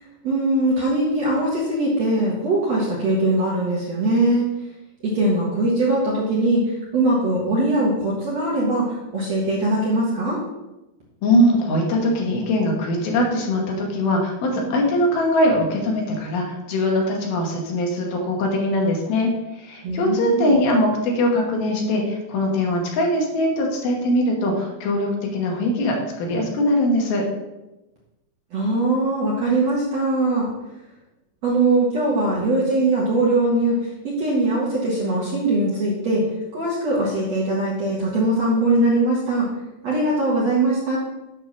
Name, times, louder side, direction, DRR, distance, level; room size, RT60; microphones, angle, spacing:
voice 1, 0.2-4.4 5.0-10.4 19.8-20.6 28.5-30.5 31.4-36.2 36.5-39.5 39.8-41.0, right 2 dB, 60° right, -6 dB, 1.8 m, -21 dB
voice 2, 11.2-27.2, left 1 dB, 70° left, 0 dB, 3.0 m, -21 dB
9.1 x 3.6 x 6.1 m, 1.0 s
omnidirectional pair, 4.7 m